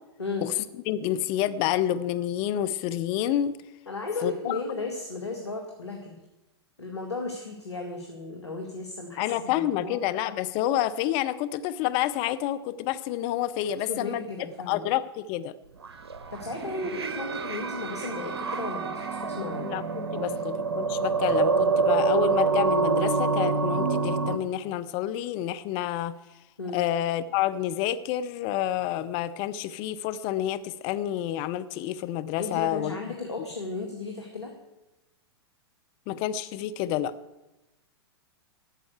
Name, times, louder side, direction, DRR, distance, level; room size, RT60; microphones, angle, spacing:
voice 1, 0.2-0.5 3.9-6.1 6.8-10.0 13.9-14.8 16.3-19.7 20.1-20.3 26.6-26.8 32.4-34.5, left 3 dB, 85° left, 2 dB, 1.8 m, -35 dB
voice 2, 0.9-3.6 4.2-4.6 9.2-14.3 14.7-15.5 16.9-17.0 19.6-26.1 26.7-33.0 36.1-37.1, left 12 dB, 40° left, 13 dB, 0.6 m, -29 dB
sound 1, 15.8-24.4, right 4 dB, 70° right, 1.2 m, -26 dB
12.5 x 7.6 x 8.0 m, 0.99 s
figure-of-eight pair, 100°, 14 cm